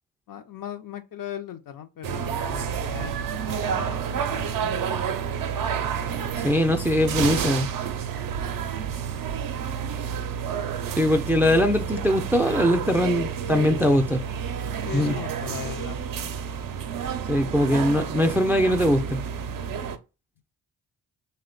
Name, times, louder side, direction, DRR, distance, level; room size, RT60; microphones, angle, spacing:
voice 1, 0.3-3.2 3.5-5.2 6.9-7.0 14.8-16.3 17.0-17.2, left 10 dB, 50° left, 0.6 m, -39 dB
sound 1, 2.0-20.0, right 7 dB, 50° right, 0.5 m, -30 dB
voice 2, 6.4-7.7 11.0-14.2 14.9-15.2 17.3-19.2, left 1 dB, 5° right, 0.4 m, -21 dB
3.0 x 2.2 x 3.7 m
supercardioid pair, 40°, 44 cm